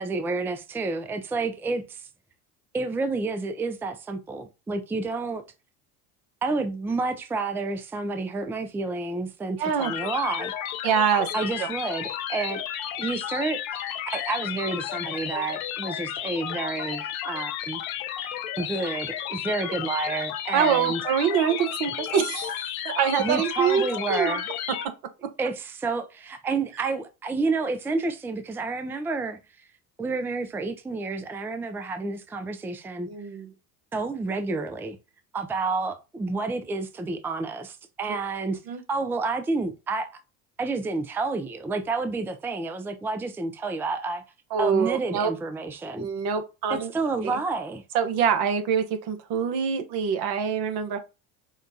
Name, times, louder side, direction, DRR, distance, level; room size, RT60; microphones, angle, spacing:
voice 1, 0.0-2.1 2.7-5.4 6.4-10.5 11.3-12.6 13.0-13.8 14.1-17.8 18.6-21.0 23.2-24.5 25.4-29.4 30.0-33.1 33.9-35.0 35.3-38.6 38.9-40.1 40.6-44.2 44.6-46.1 46.7-47.8, right 3 dB, 5° right, 0.4 m, -29 dB
voice 2, 9.6-9.9 10.8-11.7 20.5-22.5 22.8-24.4 33.1-33.5 38.1-38.2 38.7-38.8 44.5-45.3 46.0-46.9 47.2-47.4 47.9-51.0, right 7 dB, 60° right, 1.0 m, -25 dB
sound 1, 9.8-24.9, left 10 dB, 75° left, 0.7 m, -33 dB
5.2 x 2.2 x 2.7 m
hypercardioid pair, 75°, 43 cm